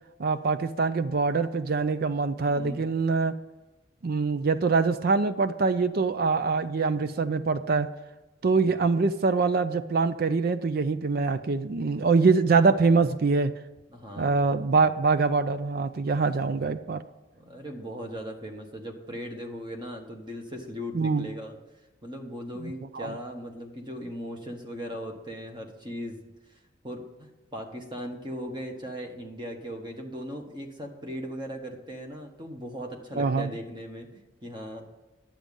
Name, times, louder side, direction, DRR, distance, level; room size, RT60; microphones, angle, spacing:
voice 1, 0.2-3.3 4.0-7.9 8.4-13.5 14.2-17.0 20.9-21.3 22.6-23.1 33.2-33.5, right 4 dB, 50° right, 11 dB, 0.4 m, -24 dB
voice 2, 2.5-2.8 13.9-14.7 16.1-16.7 17.3-21.5 22.0-26.2 26.8-34.8, equal, 25° right, 2 dB, 1.3 m, -38 dB
10.5 x 7.4 x 5.3 m, 1.1 s
head